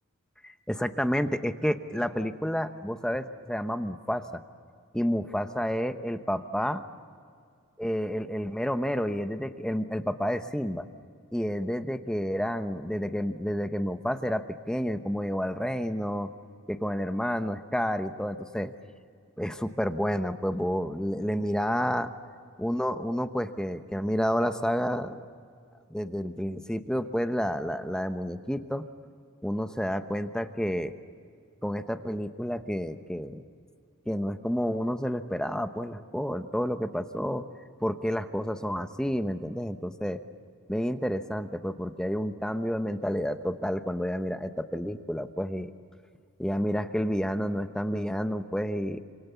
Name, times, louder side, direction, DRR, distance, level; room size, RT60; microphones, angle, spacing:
voice 1, 0.4-4.4 4.9-6.9 7.8-10.9 11.3-16.3 16.7-18.7 19.4-22.1 22.6-25.2 25.9-28.8 29.4-30.9 31.6-33.4 34.1-37.5 37.8-40.2 40.7-45.7 46.4-49.0, equal, 5° left, 9 dB, 0.9 m, -30 dB
28.0 x 26.5 x 7.0 m, 2.3 s
head